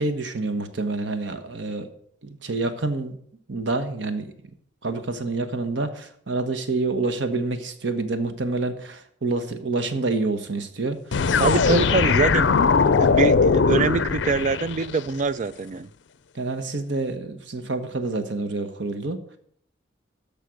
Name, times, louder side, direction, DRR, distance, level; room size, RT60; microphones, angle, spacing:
voice 1, 0.0-1.9 2.2-3.2 3.5-4.3 4.8-11.0 11.4-11.8 16.3-19.2, right 3 dB, 70° right, 1.2 m, -27 dB
sound 1, 11.1-15.0, left 5 dB, 65° left, 0.5 m, -20 dB
voice 2, 11.4-12.5 13.0-15.9, right 4 dB, 40° right, 0.4 m, -24 dB
13.0 x 5.1 x 6.4 m
head